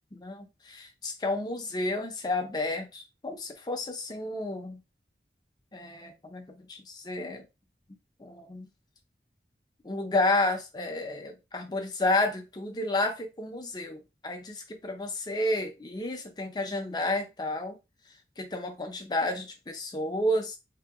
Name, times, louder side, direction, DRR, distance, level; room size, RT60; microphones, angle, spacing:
voice 1, 0.1-4.8 5.7-7.4 8.2-8.7 9.8-17.8 18.4-20.6, left 2 dB, 25° left, 0.5 m, -31 dB
2.8 x 2.2 x 3.5 m
head